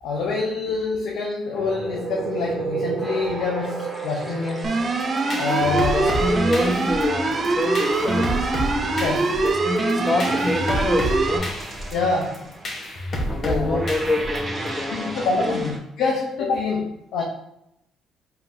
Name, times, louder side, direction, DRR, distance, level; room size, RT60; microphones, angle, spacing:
voice 1, 0.0-4.9 5.4-6.2 9.0-9.4 11.9-12.5 13.3-13.8 14.9-17.2, left 3 dB, 80° left, -1 dB, 0.6 m, -26 dB
sound 1, 1.5-15.8, right 2 dB, 25° right, 1.2 m, -33 dB
sound 2, 4.6-11.4, right 3 dB, 40° right, 0.6 m, -24 dB
sound 3, 5.0-14.7, equal, 50° left, 1.0 m, -30 dB
voice 2, 5.3-5.8 6.2-8.5 9.4-11.5 13.3-15.2 15.4-15.6, left 1 dB, 25° left, 3 dB, 0.8 m, -26 dB
4.5 x 3.6 x 2.6 m, 0.81 s
cardioid pair, 95°, 0 cm